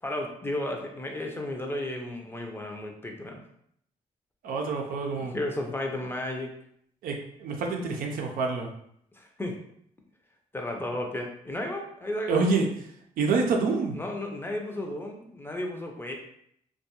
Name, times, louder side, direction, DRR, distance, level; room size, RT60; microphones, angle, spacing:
voice 1, 0.0-3.4 5.2-6.5 9.1-9.5 10.5-12.4 13.9-16.1, left 1 dB, 15° left, 2 dB, 0.5 m, -33 dB
voice 2, 4.4-5.3 7.0-8.7 12.3-12.7 13.2-14.0, right 4 dB, 80° right, 2 dB, 0.5 m, -27 dB
2.3 x 2.2 x 2.9 m, 0.71 s
cardioid pair, 80°, 15 cm